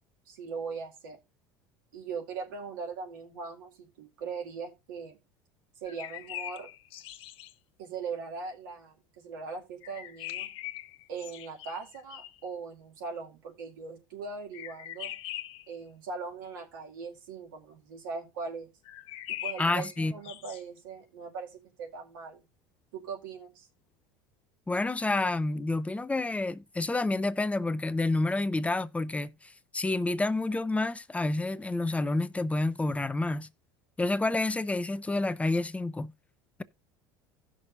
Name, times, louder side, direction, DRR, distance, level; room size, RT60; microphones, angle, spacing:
voice 1, 0.3-1.2 1.9-5.2 5.8-6.7 7.8-10.5 11.1-15.1 15.7-18.7 19.3-22.4 22.9-23.7, right 5 dB, 85° right, 2.2 m, -40 dB
sound 1, 5.8-7.5 9.8-12.5 14.5-15.7 18.8-20.6, left 13 dB, 60° left, 0.9 m, -41 dB
voice 2, 19.6-20.1 24.7-33.5 34.0-36.1, left 2 dB, 10° left, 0.6 m, -29 dB
16.5 x 6.2 x 2.6 m
hypercardioid pair, 85°, 11 cm